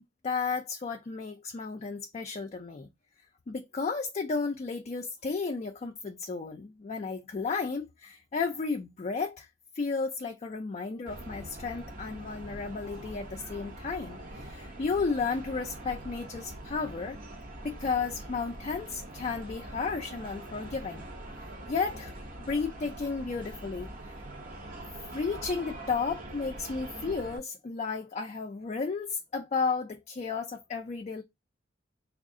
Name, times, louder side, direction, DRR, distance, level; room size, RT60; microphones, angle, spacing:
voice 1, 0.2-2.9 3.5-9.5 9.7-17.2 17.6-21.0 21.7-22.2 22.5-24.2 25.1-31.2, left 4 dB, 35° left, 0.3 m, -33 dB
sound 1, 11.1-27.4, right 1 dB, 45° right, 0.8 m, -43 dB
3.5 x 2.4 x 3.6 m
head